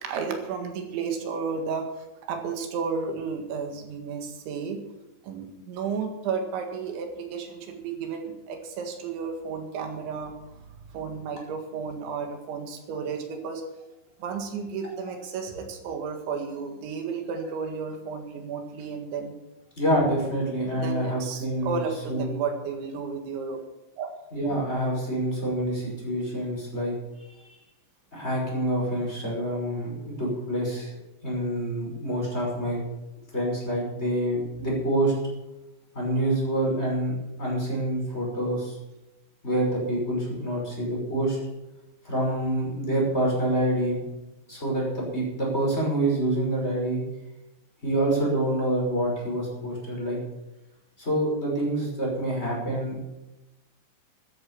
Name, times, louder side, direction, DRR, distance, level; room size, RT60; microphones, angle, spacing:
voice 1, 0.0-4.8 5.2-10.6 10.9-13.6 14.2-19.4 20.7-23.6 24.0-24.1, right 5 dB, 85° right, 4 dB, 4.2 m, -33 dB
voice 2, 19.8-21.8 22.1-22.3 24.3-26.9 27.3-27.6 28.1-30.9 31.2-32.8 33.3-35.1 35.9-37.1 37.4-38.8 39.4-41.4 42.0-44.0 44.5-47.0 47.8-50.2 51.0-53.0, right 1 dB, 15° left, -3 dB, 5.8 m, -27 dB
13.5 x 11.0 x 7.3 m, 0.98 s
omnidirectional pair, 5.2 m